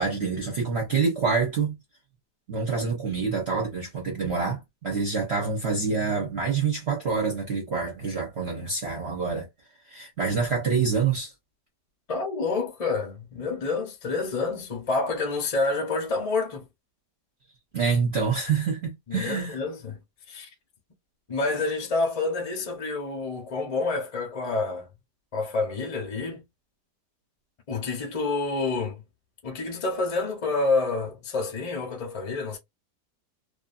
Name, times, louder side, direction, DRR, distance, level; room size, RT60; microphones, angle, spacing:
voice 1, 0.0-1.8 2.5-9.5 9.9-11.3 17.7-19.6, right 5 dB, 50° right, 0.9 m, -26 dB
voice 2, 12.1-16.6 19.1-20.0 20.3-20.5 21.3-24.9 25.3-26.4 27.7-29.0 29.4-32.6, left 3 dB, 40° left, 0.5 m, -28 dB
2.6 x 2.5 x 2.4 m
omnidirectional pair, 1.8 m